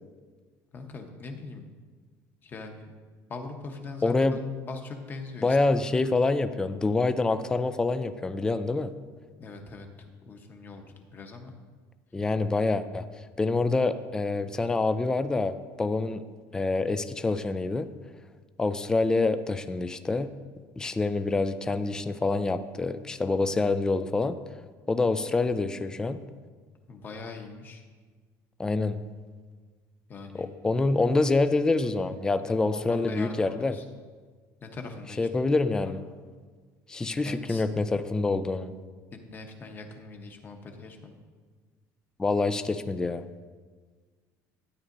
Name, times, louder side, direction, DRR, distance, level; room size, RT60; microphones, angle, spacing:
voice 1, 0.7-1.7 2.4-2.9 3.3-4.4 4.7-5.8 9.4-9.9 10.2-11.5 26.9-27.8 30.1-30.5 32.2-33.9 34.6-35.3 35.8-36.0 37.2-37.6 39.1-41.2, left 3 dB, 25° left, 4 dB, 0.9 m, -41 dB
voice 2, 4.0-4.4 5.4-8.9 12.1-13.1 13.4-16.2 16.5-17.9 18.6-20.3 20.8-24.4 24.9-26.2 28.6-29.0 30.3-33.8 35.2-36.0 36.9-38.7 42.2-43.2, left 3 dB, 10° left, 10 dB, 0.3 m, -26 dB
12.5 x 9.5 x 2.6 m, 1.5 s
cardioid pair, 155°, 7 cm